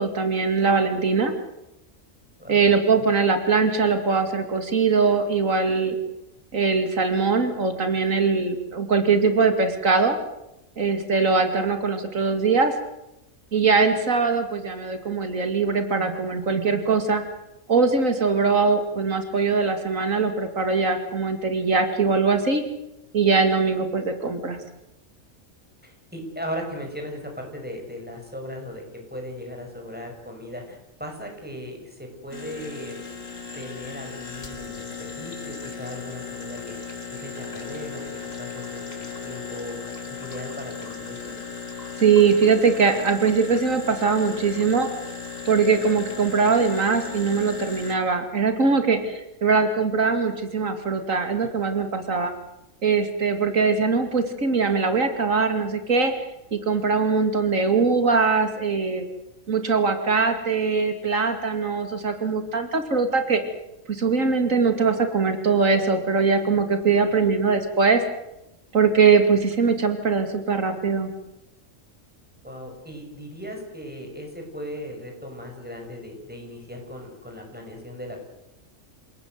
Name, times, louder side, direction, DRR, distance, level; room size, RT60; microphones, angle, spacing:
voice 1, 0.0-1.3 2.5-6.0 6.5-10.2 10.8-12.7 13.5-17.2 17.7-22.6 23.1-24.6 42.0-44.9 45.5-52.3 52.8-56.1 56.5-59.0 59.5-63.4 63.9-68.0 68.7-71.1, right 4 dB, 85° right, 7 dB, 2.8 m, -21 dB
voice 2, 25.8-28.8 29.1-33.0 33.5-36.8 37.1-39.8 40.1-41.4 67.2-67.3 72.4-78.2, equal, 5° right, 2 dB, 6.8 m, -37 dB
sound 1, 32.3-48.0, left 5 dB, 80° left, 3.2 m, -36 dB
28.5 x 18.0 x 7.9 m, 0.89 s
omnidirectional pair, 1.3 m